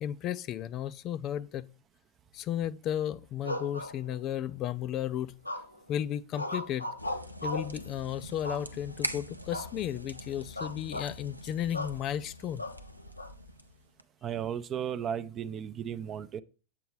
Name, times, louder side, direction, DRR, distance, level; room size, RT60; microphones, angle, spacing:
voice 1, 0.0-1.7 2.3-5.3 5.9-6.9 7.4-12.6, left 10 dB, 35° left, 0.4 m, -34 dB
sound 1, 3.4-4.5 5.4-5.9 6.3-7.8 8.4-9.0 9.5-9.8 10.1-10.2 10.6-11.1 11.7-12.0 12.6-13.3, left 1 dB, 85° left, 0.7 m, -37 dB
sound 2, 7.0-14.0, equal, 90° right, 0.6 m, -43 dB
voice 2, 14.2-16.4, right 8 dB, 30° right, 0.6 m, -35 dB
8.6 x 7.7 x 3.1 m
figure-of-eight pair, 90°, 0 cm